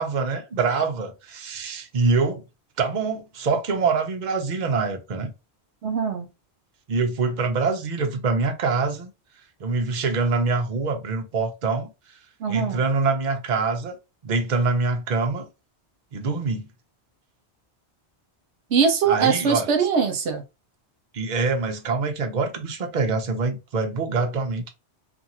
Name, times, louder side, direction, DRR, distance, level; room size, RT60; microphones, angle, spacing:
voice 1, 0.0-2.4 2.8-5.3 6.9-9.1 9.6-12.2 12.5-14.0 14.2-15.5 16.1-16.7 19.1-19.7 21.1-24.7, right 4 dB, 50° right, 0.7 m, -25 dB
voice 2, 5.8-6.3 12.4-12.8 18.7-20.4, right 6 dB, 75° right, 1.0 m, -22 dB
2.6 x 2.5 x 2.8 m
omnidirectional pair, 1.2 m